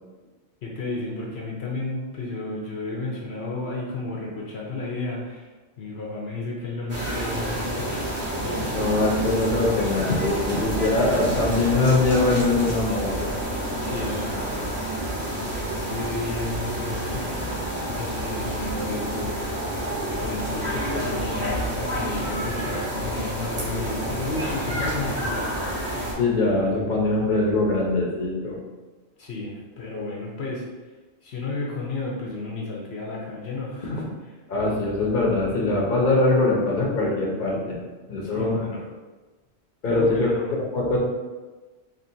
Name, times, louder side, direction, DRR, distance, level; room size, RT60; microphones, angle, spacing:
voice 1, 0.6-5.5 5.8-8.1 8.4-8.8 13.8-14.6 15.1-17.5 17.9-19.3 20.2-25.9 29.2-30.7 31.2-34.0 38.2-38.8 39.9-40.6, left 2 dB, 75° left, -3 dB, 1.0 m, -32 dB
sound 1, 6.9-26.1, right 1 dB, 80° right, 1.5 m, -29 dB
voice 2, 8.7-13.3 26.2-28.6 34.5-37.7 38.1-38.6 39.8-41.0, left 2 dB, 50° left, -3 dB, 1.0 m, -22 dB
4.4 x 3.0 x 2.7 m, 1.2 s
omnidirectional pair, 1.1 m